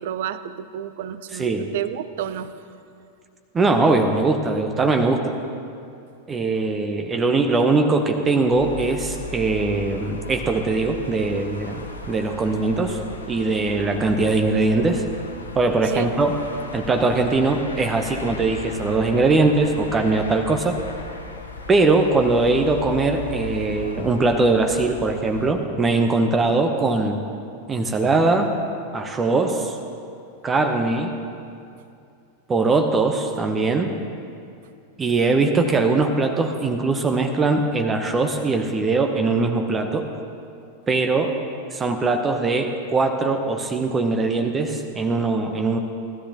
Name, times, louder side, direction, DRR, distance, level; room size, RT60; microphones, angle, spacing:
voice 1, 0.0-2.6 15.8-16.1, right 10 dB, 55° right, 13 dB, 0.5 m, -30 dB
voice 2, 1.3-1.7 3.5-5.3 6.3-13.0 13.3-15.0 15.5-16.4 16.7-20.7 21.7-27.2 27.7-28.5 28.9-29.8 30.4-31.1 32.5-33.9 35.0-40.1 40.9-41.4 41.7-45.8, right 3 dB, 20° right, 5 dB, 0.8 m, -21 dB
sound 1, 8.5-25.5, left 2 dB, 75° left, 0.9 m, -37 dB
18.5 x 13.0 x 2.9 m, 2.5 s
figure-of-eight pair, 90°, 0 cm